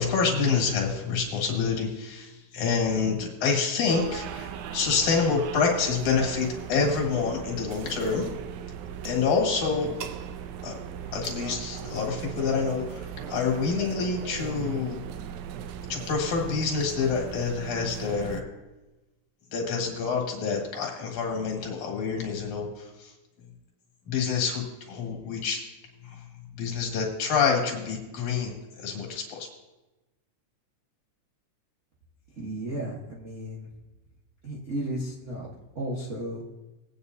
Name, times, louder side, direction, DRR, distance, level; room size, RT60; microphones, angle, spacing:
voice 1, 0.0-8.3 9.0-9.9 10.6-10.8 11.1-15.0 15.9-18.5 19.5-23.1 24.1-25.6 26.0-26.2 26.6-29.5, left 5 dB, 70° left, 0 dB, 3.2 m, -27 dB
sound 1, 3.9-18.4, right 8 dB, 80° right, 2.0 m, -38 dB
voice 2, 32.3-33.7 34.4-35.5 35.7-36.5, right 1 dB, 65° right, -6 dB, 0.7 m, -34 dB
20.0 x 8.7 x 2.7 m, 1.1 s
omnidirectional pair, 3.6 m